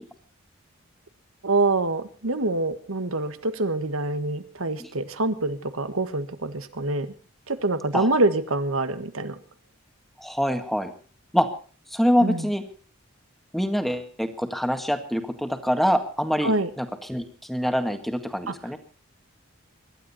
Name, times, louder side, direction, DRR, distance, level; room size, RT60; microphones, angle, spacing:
voice 1, 1.4-7.1 7.5-9.4 12.2-12.4 16.4-16.7 18.5-18.6, right 2 dB, 85° right, 10 dB, 1.7 m, -25 dB
voice 2, 10.2-10.9 11.3-11.5 11.9-12.6 13.5-16.5 16.8-18.8, equal, ahead, 7 dB, 1.9 m, -25 dB
24.0 x 12.0 x 4.3 m, 0.38 s
head